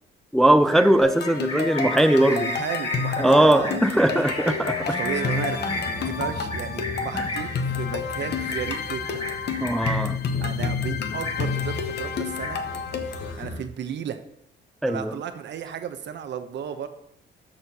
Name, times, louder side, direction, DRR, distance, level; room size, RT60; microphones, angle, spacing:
voice 1, 0.3-2.5 3.2-5.0 9.6-10.2 14.8-15.2, right 1 dB, ahead, 0.3 m, -20 dB
Livestock farm animals working animals, 0.6-10.2 10.5-10.8 11.1-11.8 12.1-12.8, left 1 dB, 30° left, 2.6 m, -33 dB
sound 1, 1.0-13.3, left 6 dB, 55° left, 0.9 m, -30 dB
voice 2, 2.3-4.3 4.8-7.5 7.8-9.2 10.4-12.6 13.4-14.2 14.9-16.9, right 8 dB, 65° right, 0.8 m, -34 dB
sound 2, 3.1-13.6, left 3 dB, 85° left, 1.3 m, -38 dB
13.0 x 4.3 x 2.8 m
cardioid pair, 90°, 20 cm